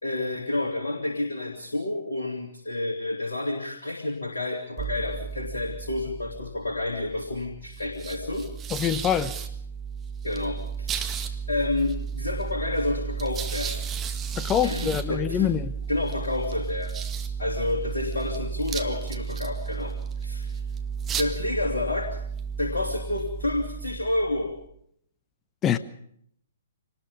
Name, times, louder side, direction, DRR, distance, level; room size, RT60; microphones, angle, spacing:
voice 1, 0.0-8.5 10.2-11.2 11.5-13.8 14.6-15.5 15.9-16.9 17.4-19.9 20.2-20.6 21.2-22.2 22.6-24.5, left 2 dB, 70° left, 2.9 m, -29 dB
sound 1, 4.8-24.7, right 6 dB, 20° right, 1.8 m, -33 dB
voice 2, 8.7-9.3 14.4-15.7 25.6-25.8, left 9 dB, 20° left, 1.0 m, -25 dB
25.5 x 20.0 x 5.4 m
figure-of-eight pair, 120°, 0 cm